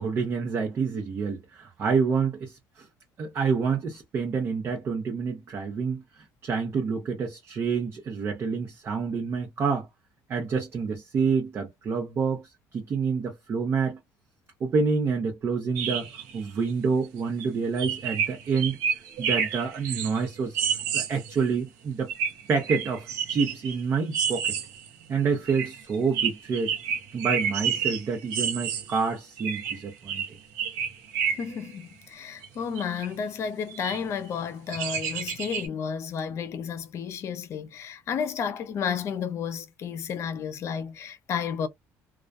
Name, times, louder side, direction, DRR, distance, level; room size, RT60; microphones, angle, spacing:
voice 1, 0.0-2.9 3.2-6.0 6.4-9.9 10.3-14.0 14.6-16.1 16.3-18.8 19.2-20.6 20.9-22.1 22.5-24.5 25.1-26.7 27.1-30.4, right 5 dB, 40° right, 0.8 m, -28 dB
sound 1, 15.8-16.4 16.7-16.8 17.4-17.5 17.8-21.4 22.1-23.8 24.1-24.9 25.5-29.1 29.4-31.7 32.4-32.5 32.8-33.1 33.7-34.0 34.7-35.7, right 7 dB, 85° right, 0.8 m, -29 dB
voice 2, 31.4-41.7, left 7 dB, 50° left, 0.5 m, -32 dB
2.3 x 2.2 x 2.4 m
cardioid pair, 115°, 6 cm